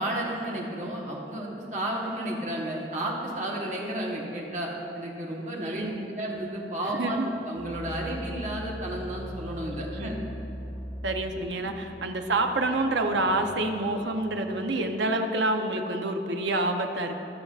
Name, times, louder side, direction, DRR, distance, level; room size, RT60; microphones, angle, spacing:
voice 1, 0.0-5.8 6.2-7.2 7.5-10.2, right 1 dB, 40° right, -2 dB, 1.3 m, -32 dB
voice 2, 5.6-6.1 6.9-7.3 10.0-10.1 11.0-17.2, right 2 dB, 80° right, 5 dB, 0.7 m, -28 dB
sound 1, 7.6-14.1, equal, 20° left, 1.2 m, -40 dB
18.0 x 7.1 x 2.4 m, 2.9 s
head